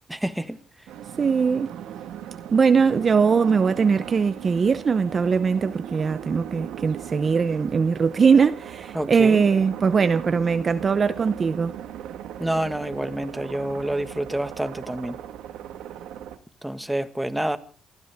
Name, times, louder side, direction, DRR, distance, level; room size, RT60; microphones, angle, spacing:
voice 1, 0.1-0.6 8.9-9.4 12.4-15.2 16.6-17.6, right 1 dB, 5° right, 1.6 m, -28 dB
sound 1, 0.9-16.4, right 10 dB, 90° right, 1.6 m, -38 dB
voice 2, 1.2-1.7 2.5-11.7, right 5 dB, 40° right, 0.8 m, -21 dB
28.0 x 13.5 x 3.6 m
cardioid pair, 90°, 0 cm